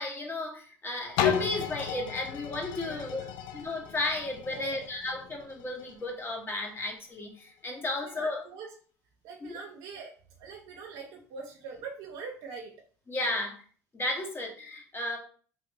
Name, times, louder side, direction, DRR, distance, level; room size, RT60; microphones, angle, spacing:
voice 1, 0.0-3.2 3.5-8.4 9.4-9.6 13.1-13.6 13.9-15.2, left 2 dB, 30° left, 1 dB, 1.0 m, -34 dB
sound 1, 1.2-6.9 7.5-7.6, left 9 dB, 70° left, 0.4 m, -34 dB
voice 2, 2.8-3.3 4.5-4.8 8.0-8.7 9.2-10.1 10.4-12.7, right 5 dB, 70° right, 0 dB, 0.6 m, -43 dB
2.9 x 2.5 x 2.9 m, 0.43 s
hypercardioid pair, 70°, 8 cm